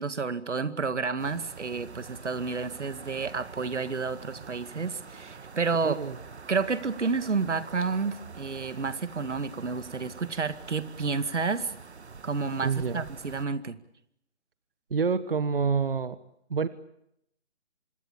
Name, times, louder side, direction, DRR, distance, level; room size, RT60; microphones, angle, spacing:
voice 1, 0.0-6.0 6.5-11.7 12.2-13.8, right 4 dB, 90° right, 13 dB, 2.1 m, -30 dB
sound 1, 1.2-13.4, right 5 dB, 70° right, 1.8 m, -46 dB
voice 2, 5.8-6.2 12.6-13.0 14.9-16.2 16.5-16.7, right 5 dB, 55° right, 15 dB, 1.2 m, -27 dB
25.5 x 21.5 x 8.5 m, 0.75 s
hypercardioid pair, 180°, 34 cm